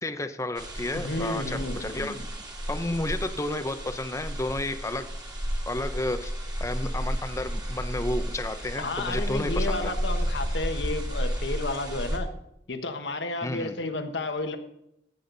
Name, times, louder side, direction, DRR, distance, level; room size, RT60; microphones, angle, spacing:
voice 1, 0.0-2.3 2.7-5.1 5.7-6.3 6.6-9.9 13.4-13.7, left 2 dB, 15° left, 9 dB, 0.7 m, -31 dB
sound 1, 0.5-12.2, equal, 25° right, 2.1 m, -32 dB
voice 2, 0.9-2.3 8.8-12.3 12.7-14.6, left 2 dB, 70° left, 7 dB, 1.3 m, -32 dB
15.5 x 8.6 x 4.0 m, 0.79 s
head